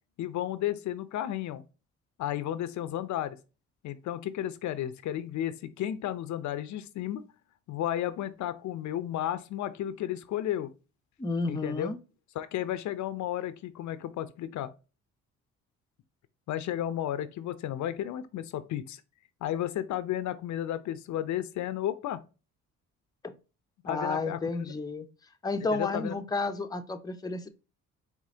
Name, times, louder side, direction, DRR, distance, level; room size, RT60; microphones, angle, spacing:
voice 1, 0.2-1.6 2.2-3.4 3.8-7.2 7.7-10.7 11.5-11.9 12.4-14.7 16.5-19.0 19.4-22.2 23.8-24.6 25.7-26.1, left 12 dB, 70° left, 0.5 m, -33 dB
voice 2, 11.2-12.0 23.2-23.3 23.8-25.1 25.4-27.5, left 3 dB, 15° left, 0.6 m, -31 dB
4.9 x 3.3 x 2.7 m
cardioid pair, 90°, 30 cm